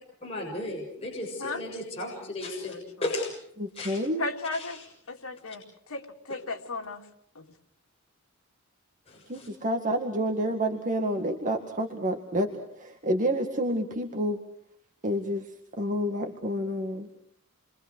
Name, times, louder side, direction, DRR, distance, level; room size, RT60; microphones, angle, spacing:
voice 1, 0.2-2.7 3.0-3.3 3.8-4.0 4.5-4.8 9.1-9.5, left 1 dB, 30° left, -2 dB, 7.1 m, -35 dB
voice 2, 2.2-2.8 4.2-4.8 5.1-5.6 5.9-6.0 6.3-7.0 7.4-7.5, left 3 dB, 80° left, 1 dB, 3.2 m, -35 dB
voice 3, 3.6-4.3 9.3-14.4 15.0-15.5 15.8-17.1, equal, 40° right, 3 dB, 2.1 m, -29 dB
29.0 x 24.5 x 6.5 m, 0.68 s
head